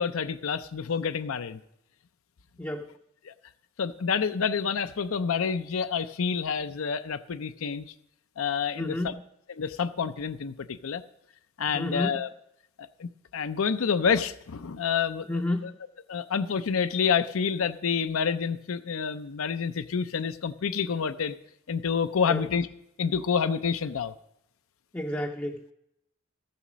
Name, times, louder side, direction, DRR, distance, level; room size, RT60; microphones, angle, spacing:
voice 1, 0.0-1.6 3.2-3.3 3.8-7.9 8.4-9.1 9.5-11.0 11.6-12.3 13.0-15.7 16.1-21.4 21.7-22.7 23.0-24.1, left 6 dB, 80° left, 11 dB, 0.5 m, -28 dB
voice 2, 2.6-3.0 8.8-9.2 11.7-12.2 15.3-15.7 22.3-22.4 24.9-25.7, left 1 dB, 10° left, 2 dB, 0.5 m, -31 dB
13.5 x 7.0 x 6.1 m, 0.80 s
head